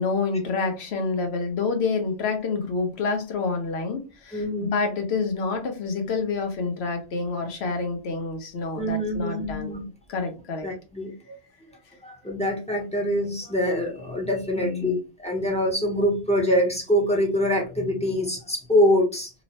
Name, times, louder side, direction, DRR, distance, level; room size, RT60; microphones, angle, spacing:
voice 1, 0.0-9.8 10.1-10.7 14.6-15.0, left 4 dB, 70° left, 4 dB, 1.0 m, -28 dB
voice 2, 4.3-4.8 8.8-9.8 10.6-11.4 12.0-19.3, equal, 5° left, -2 dB, 0.6 m, -24 dB
3.0 x 2.1 x 2.7 m, 0.30 s
omnidirectional pair, 1.2 m